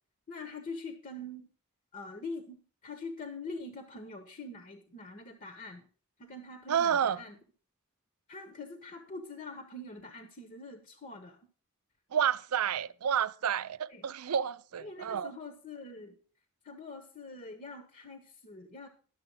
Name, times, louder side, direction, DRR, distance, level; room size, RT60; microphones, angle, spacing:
voice 1, 0.3-1.5 1.9-5.8 6.2-7.4 8.3-11.4 13.9-14.1 14.8-16.2 16.6-18.9, left 2 dB, 40° left, 1.0 m, -44 dB
voice 2, 6.7-7.2 12.1-15.3, right 8 dB, 85° right, 0.5 m, -30 dB
11.5 x 6.8 x 5.4 m
head